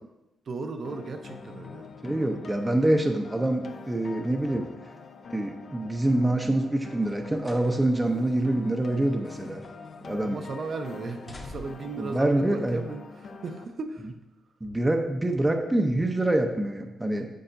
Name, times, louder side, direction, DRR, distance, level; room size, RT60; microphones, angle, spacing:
voice 1, 0.5-2.5 4.2-4.3 10.2-14.1, right 4 dB, 45° right, 5 dB, 0.8 m, -36 dB
sound 1, 0.8-13.6, left 4 dB, 50° left, 0.6 m, -44 dB
voice 2, 2.0-4.7 5.3-9.6 10.0-10.4 12.0-12.8 14.6-17.3, right 1 dB, 10° right, 4 dB, 0.7 m, -25 dB
sound 2, 7.0-7.7 8.1-8.3 9.0-10.0 10.3-10.7 11.1-12.0 12.9-13.0, left 2 dB, 20° left, 1.0 m, -47 dB
10.0 x 7.6 x 2.7 m, 0.95 s
cardioid pair, 130°, 0 cm